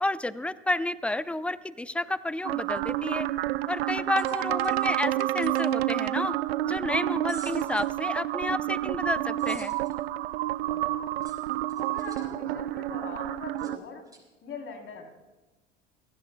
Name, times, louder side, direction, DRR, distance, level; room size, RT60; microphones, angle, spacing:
voice 1, 0.0-3.3 3.7-6.4 6.6-9.8, left 2 dB, 5° left, 16 dB, 0.6 m, -30 dB
sound 1, 2.4-13.8, right 15 dB, 80° right, 0.6 m, -29 dB
sound 2, 4.2-5.7 7.3-8.0 9.4-9.9 11.2-12.3 13.6-13.7 14.1-14.2, right 2 dB, 10° right, 5.1 m, -49 dB
voice 2, 10.6-11.2 11.8-14.0 14.4-15.1, left 4 dB, 45° left, 2 dB, 3.5 m, -42 dB
26.5 x 16.5 x 2.3 m, 1.1 s
hypercardioid pair, 75°, 30 cm